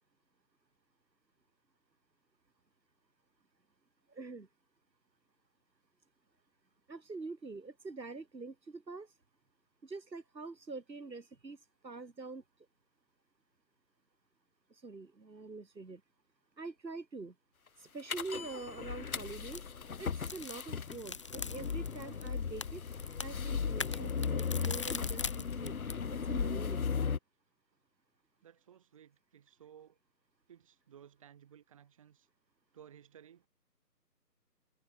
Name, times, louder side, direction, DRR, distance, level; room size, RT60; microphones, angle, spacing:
voice 1, 4.1-4.5 6.9-9.1 9.8-11.6 11.8-12.4 14.7-16.0 16.6-17.4 17.8-19.6 20.0-22.8 23.2-25.8 26.1-26.9, right 3 dB, 85° right, 5.7 m, -45 dB
sound 1, 18.1-27.2, left 6 dB, 55° left, 1.0 m, -36 dB
sound 2, 19.0-26.0, left 5 dB, 20° left, 1.4 m, -44 dB
voice 2, 28.4-30.0 30.5-32.3 32.7-33.5, right 9 dB, 20° right, 2.9 m, -57 dB
figure-of-eight pair, 170°, 50 cm